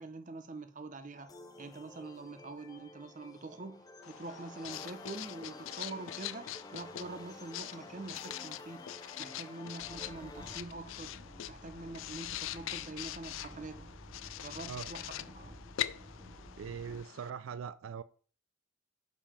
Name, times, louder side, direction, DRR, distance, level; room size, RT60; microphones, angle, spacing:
voice 1, 0.0-8.9 9.2-11.1 11.5-13.8 14.4-15.5, right 3 dB, 40° right, 0.7 m, -45 dB
sound 1, 1.2-10.6, left 2 dB, 20° left, 0.5 m, -51 dB
Writing, 4.0-17.3, left 12 dB, 75° left, 0.4 m, -43 dB
sound 2, 9.8-17.0, equal, 20° right, 2.7 m, -52 dB
voice 2, 16.6-18.0, right 7 dB, 80° right, 0.3 m, -41 dB
5.3 x 5.1 x 5.6 m
head